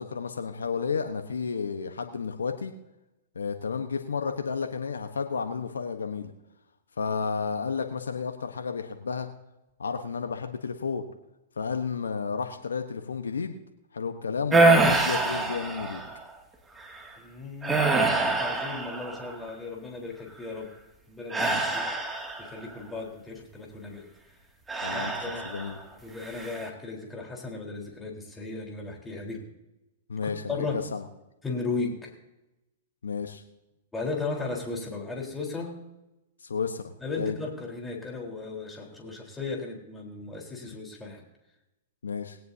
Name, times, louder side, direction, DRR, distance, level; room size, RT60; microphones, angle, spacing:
voice 1, 0.0-2.7 3.3-6.3 7.0-9.3 9.8-11.0 11.6-13.6 13.9-16.0 21.4-21.6 24.8-25.8 30.1-31.0 33.0-33.4 36.4-37.4 42.0-42.4, left 5 dB, 90° left, 6 dB, 1.1 m, -32 dB
sound 1, 14.5-16.2 16.8-17.0 17.6-19.5 21.3-22.7 24.7-25.8 26.2-26.7, right 3 dB, 10° right, 2.4 m, -25 dB
voice 2, 17.2-20.7 21.1-21.9 22.4-24.1 24.9-25.5 26.0-29.5 30.2-30.9 31.4-32.1 33.9-35.8 37.0-41.2, left 3 dB, 10° left, -1 dB, 4.1 m, -36 dB
19.0 x 17.5 x 2.8 m, 0.96 s
hypercardioid pair, 120°, 0 cm